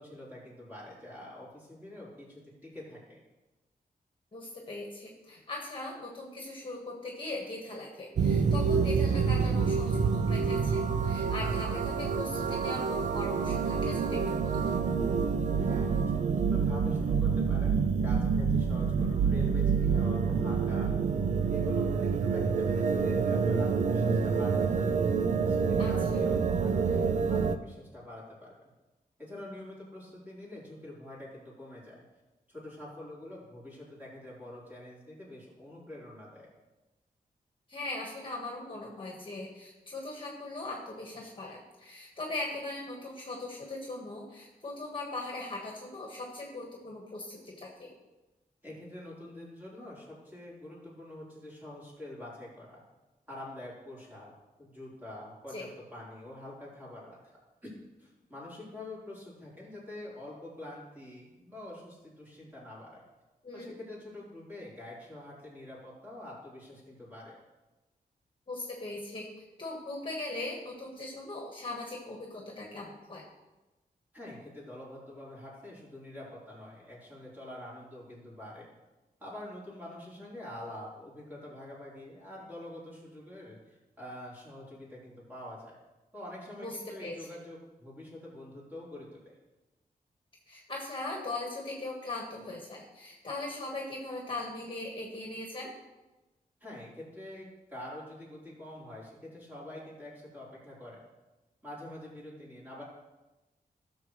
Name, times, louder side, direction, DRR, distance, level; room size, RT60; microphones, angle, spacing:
voice 1, 0.0-3.2 15.6-20.9 21.5-25.0 25.4-28.7 29.2-32.0 32.5-36.5 48.6-52.8 53.3-54.3 54.6-57.7 58.0-63.0 63.5-67.4 74.1-78.7 79.2-85.8 86.1-89.3 96.6-101.0 101.6-102.8, left 1 dB, 10° right, -7 dB, 4.1 m, -46 dB
voice 2, 4.3-14.8 25.8-25.9 37.7-47.9 55.5-55.6 63.4-63.7 68.5-73.2 86.6-87.2 90.5-95.7, left 2 dB, 35° left, -1 dB, 1.6 m, -40 dB
sound 1, 8.2-27.6, right 5 dB, 50° right, 0.5 m, -27 dB
17.0 x 6.9 x 3.2 m, 1.1 s
wide cardioid pair, 170°, 16 cm